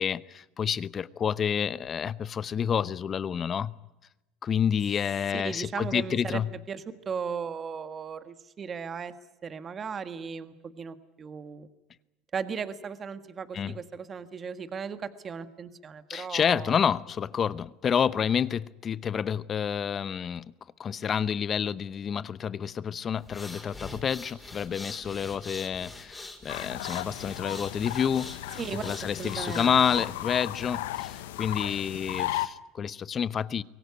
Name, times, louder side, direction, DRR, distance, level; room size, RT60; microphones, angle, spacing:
voice 1, 0.0-3.7 4.4-6.5 13.5-13.8 16.1-20.5 20.8-33.6, left 7 dB, 35° left, 0.8 m, -29 dB
voice 2, 5.3-9.1 9.4-11.7 12.3-16.8 28.6-28.8 29.2-29.7, right 6 dB, 35° right, 1.6 m, -36 dB
sound 1, 23.2-30.3, left 2 dB, 10° left, 5.1 m, -44 dB
sound 2, 26.5-32.5, left 14 dB, 85° left, 1.0 m, -35 dB
23.5 x 18.5 x 9.6 m
supercardioid pair, 95°, 0 cm